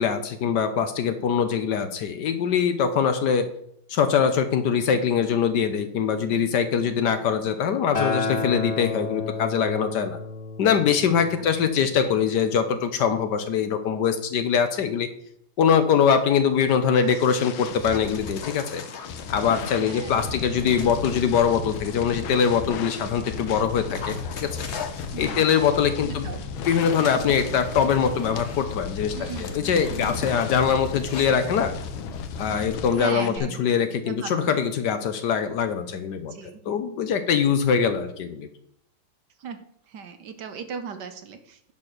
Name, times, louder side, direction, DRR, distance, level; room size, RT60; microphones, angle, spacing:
voice 1, 0.0-3.5 3.9-10.2 10.6-15.1 15.6-18.8 19.3-24.5 25.2-26.3 26.6-31.7 32.4-36.4 36.7-38.5, left 7 dB, 65° left, 9 dB, 1.3 m, -23 dB
Acoustic guitar, 7.9-12.2 13.1-13.2, left 3 dB, 30° left, 1.9 m, -31 dB
voice 2, 11.7-12.2 19.8-20.3 25.1-25.4 26.0-26.4 29.1-30.4 33.0-33.6 34.1-34.5 36.3-36.6 39.4-41.7, right 6 dB, 65° right, 8 dB, 1.4 m, -38 dB
sound 1, 16.4-33.4, left 5 dB, 85° left, 1.7 m, -35 dB
Dog, 17.1-20.0 20.6-21.6 22.2-32.6, left 5 dB, 50° left, 0.8 m, -41 dB
10.5 x 4.4 x 6.6 m, 0.72 s
omnidirectional pair, 2.2 m